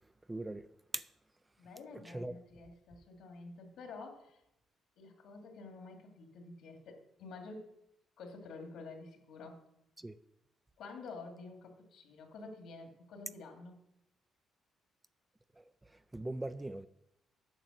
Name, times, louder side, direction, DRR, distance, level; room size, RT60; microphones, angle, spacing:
voice 1, 0.3-0.7 0.9-1.1 2.0-2.4 10.0-10.2 15.6-15.7 16.1-16.9, right 2 dB, 10° right, 0.3 m, -40 dB
voice 2, 1.6-4.4 5.0-7.7 8.2-9.6 10.8-13.8, left 3 dB, 75° left, 2.3 m, -49 dB
8.9 x 7.2 x 6.3 m
cardioid pair, 150°, 0 cm